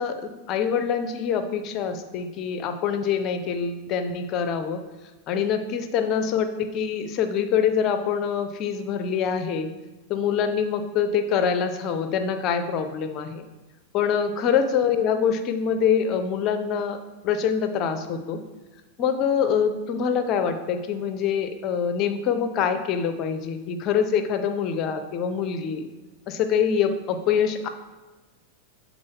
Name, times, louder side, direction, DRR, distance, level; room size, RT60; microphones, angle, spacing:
voice 1, 0.0-4.8 5.3-9.7 10.1-13.5 13.9-17.0 17.2-18.4 19.0-25.8 26.3-27.7, left 7 dB, 35° left, 8 dB, 0.6 m, -25 dB
7.5 x 4.0 x 4.6 m, 1.2 s
figure-of-eight pair, 90°, 0 cm